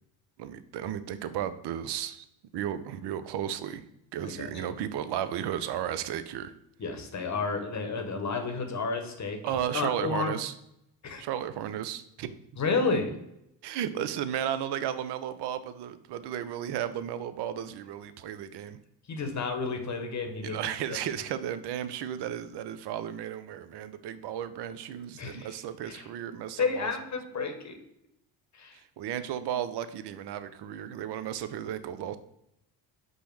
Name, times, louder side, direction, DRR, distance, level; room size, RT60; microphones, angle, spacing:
voice 1, 0.4-2.2 2.5-3.8 4.1-6.5 9.4-10.5 11.2-12.4 13.6-18.8 20.4-26.9 28.7-32.2, right 10 dB, 55° right, 12 dB, 0.5 m, -34 dB
voice 2, 4.2-4.8 6.8-9.4 9.7-10.3 11.0-11.2 12.6-13.1 19.1-21.0 25.1-25.5 25.8-26.0 26.6-27.8 28.5-28.8, left 4 dB, 35° left, 5 dB, 0.9 m, -31 dB
5.2 x 2.1 x 4.5 m, 0.80 s
supercardioid pair, 65°, 50 cm